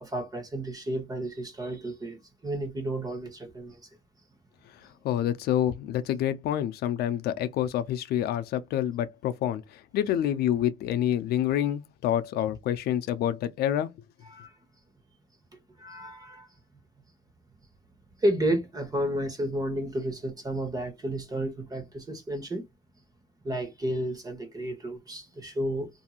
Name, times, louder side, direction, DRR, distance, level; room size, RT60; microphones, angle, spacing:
voice 1, 0.0-3.9 14.3-14.5 15.8-16.5 18.2-22.6 23.4-25.9, right 1 dB, 20° right, 1.1 m, -31 dB
voice 2, 4.8-13.9, left 11 dB, 70° left, 0.5 m, -27 dB
2.8 x 2.6 x 2.4 m
cardioid pair, 110°, 17 cm